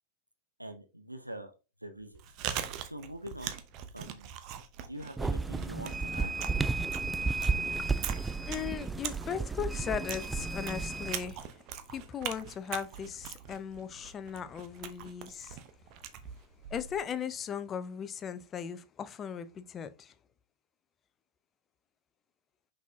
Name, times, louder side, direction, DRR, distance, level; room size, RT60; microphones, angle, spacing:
voice 1, 0.6-1.5 1.8-2.2 2.5-3.6 3.9-4.3 4.9-6.3, right 1 dB, 85° right, 0.8 m, -44 dB
Chewing mastication, 2.0-17.1, right 9 dB, 40° right, 0.8 m, -42 dB
sound 1, 5.2-11.2, right 4 dB, 10° right, 0.3 m, -33 dB
voice 2, 7.8-15.6 16.7-20.1, left 8 dB, 25° left, 0.6 m, -38 dB
6.1 x 5.5 x 2.8 m
figure-of-eight pair, 90°, 0 cm